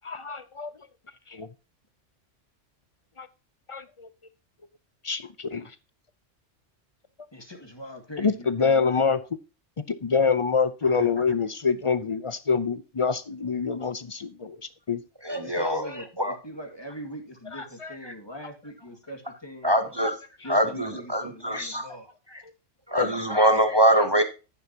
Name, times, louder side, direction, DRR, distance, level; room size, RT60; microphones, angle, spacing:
voice 1, 0.0-0.7 1.3-1.5 3.2-3.3 3.7-4.1 5.0-5.7 8.2-9.2 10.0-14.6 14.9-15.0 23.0-23.1, left 5 dB, 35° left, 14 dB, 0.5 m, -25 dB
voice 2, 7.3-9.1 15.4-19.7 20.4-22.1, left 1 dB, 20° left, 3 dB, 2.0 m, -41 dB
voice 3, 15.2-15.9 16.2-16.3 19.6-20.1 20.5-21.8 22.9-24.2, right 1 dB, 25° right, 7 dB, 0.8 m, -23 dB
10.5 x 9.6 x 2.8 m, 0.31 s
omnidirectional pair, 1.2 m